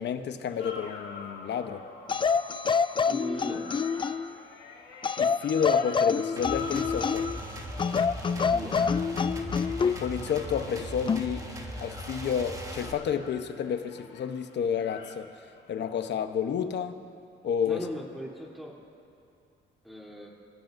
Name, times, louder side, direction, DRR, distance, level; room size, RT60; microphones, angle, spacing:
voice 1, 0.0-1.8 5.2-7.3 9.8-11.5 11.8-15.3 15.7-17.0 17.4-17.8, left 7 dB, 60° left, 8 dB, 1.0 m, -30 dB
sound 1, 0.6-16.1 17.7-17.8, left 5 dB, 80° left, 1.8 m, -46 dB
sound 2, 2.1-4.3 5.0-7.4 7.8-10.0 11.1-11.3, left 5 dB, 25° left, 0.4 m, -27 dB
voice 2, 3.1-3.6 8.5-8.8 17.6-18.7 19.8-20.3, equal, ahead, -3 dB, 3.3 m, -38 dB
sound 3, 6.4-12.9, right 1 dB, 15° right, 1.6 m, -39 dB
26.0 x 15.5 x 2.7 m, 2.5 s
cardioid pair, 90°, 20 cm